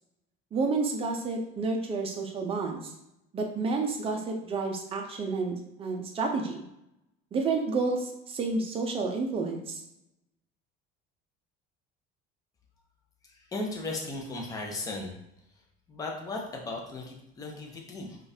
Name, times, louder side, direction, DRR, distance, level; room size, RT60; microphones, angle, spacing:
voice 1, 0.5-2.9 3.3-6.6 7.3-9.8, right 3 dB, 25° right, 2 dB, 0.6 m, -30 dB
voice 2, 13.5-15.2 15.9-18.2, left 2 dB, 15° left, 0 dB, 0.6 m, -36 dB
5.0 x 2.4 x 2.7 m, 0.82 s
cardioid pair, 160°, 21 cm